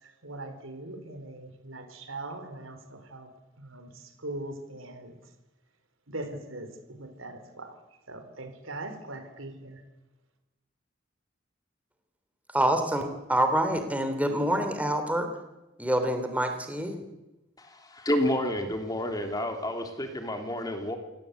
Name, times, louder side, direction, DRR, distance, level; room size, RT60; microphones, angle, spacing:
voice 1, 0.0-3.3 3.6-5.2 6.1-7.8 8.1-9.8, right 2 dB, 90° right, 8 dB, 4.3 m, -41 dB
voice 2, 12.5-15.3 15.8-17.0, right 1 dB, 5° right, 7 dB, 3.1 m, -26 dB
voice 3, 17.6-21.0, left 1 dB, 20° left, 5 dB, 3.2 m, -30 dB
28.0 x 18.0 x 8.3 m, 1.0 s
head